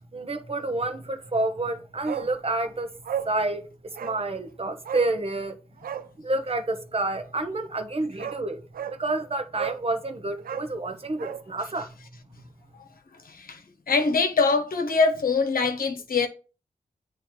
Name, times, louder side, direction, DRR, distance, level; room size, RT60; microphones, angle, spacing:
voice 1, 0.1-2.9 3.2-3.6 4.0-5.6 6.2-8.6 9.0-11.9, right 2 dB, 40° right, 1.0 m, -29 dB
Bark, 2.0-2.3 2.6-2.7 3.0-3.3 3.9-4.2 4.8-5.1 5.8-6.1 7.7-7.8 8.2-8.4 8.7-9.0 9.5-9.8 10.4-11.4 11.7-11.8, right 8 dB, 75° right, 0.5 m, -33 dB
voice 2, 13.2-16.3, left 4 dB, 70° left, 1.0 m, -24 dB
8.8 x 3.2 x 4.4 m
cardioid pair, 50°, 15 cm